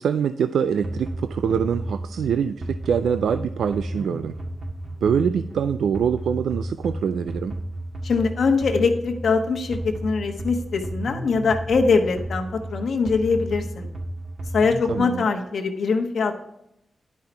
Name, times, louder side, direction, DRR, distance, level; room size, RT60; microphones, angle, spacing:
voice 1, 0.0-4.3 5.0-7.5 14.9-15.2, right 7 dB, 90° right, 11 dB, 0.3 m, -24 dB
sound 1, 0.8-15.1, right 1 dB, 55° right, 2.0 m, -33 dB
voice 2, 8.0-13.9 14.5-16.4, left 4 dB, 75° left, 4 dB, 1.2 m, -22 dB
10.5 x 5.5 x 4.5 m, 0.83 s
cardioid pair, 65°, 0 cm